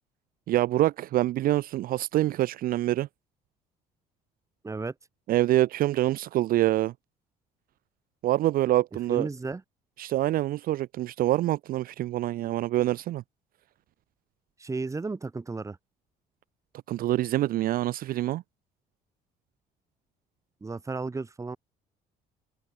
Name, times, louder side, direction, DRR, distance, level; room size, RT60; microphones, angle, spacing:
voice 1, 0.5-3.1 5.3-6.9 8.2-9.3 10.0-13.2 16.9-18.4, right 15 dB, 60° right, 0.4 m, -25 dB
voice 2, 9.1-9.6 14.6-15.8 20.6-21.6, right 3 dB, 20° right, 1.5 m, -33 dB
cardioid pair, 110°, 17 cm